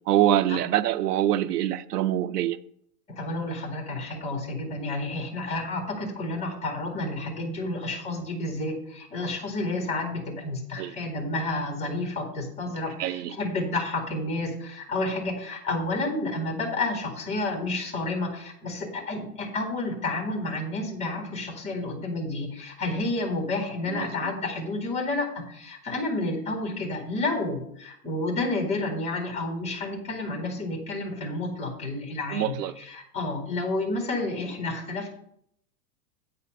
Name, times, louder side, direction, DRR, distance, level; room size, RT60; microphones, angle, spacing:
voice 1, 0.1-2.6 10.8-10.9 13.0-13.3 23.9-24.1 32.3-32.7, right 12 dB, 90° right, 0.7 m, -24 dB
voice 2, 3.1-35.1, left 2 dB, 15° left, 2.3 m, -30 dB
8.6 x 4.4 x 6.4 m
supercardioid pair, 145°, 45 cm